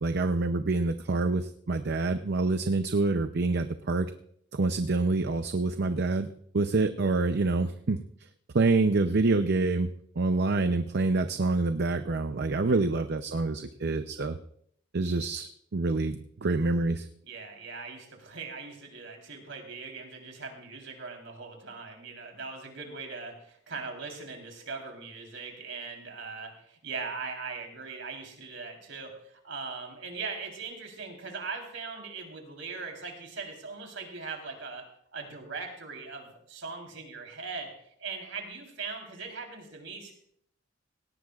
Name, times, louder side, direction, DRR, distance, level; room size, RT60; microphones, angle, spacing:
voice 1, 0.0-4.1 4.5-6.3 6.5-8.0 8.5-9.9 10.2-14.4 14.9-17.1, right 3 dB, 55° right, 9 dB, 0.6 m, -26 dB
voice 2, 12.4-12.8 17.2-34.9 35.1-37.7 38.0-40.1, right 4 dB, 75° right, 2 dB, 3.7 m, -40 dB
18.0 x 17.5 x 2.4 m, 0.69 s
head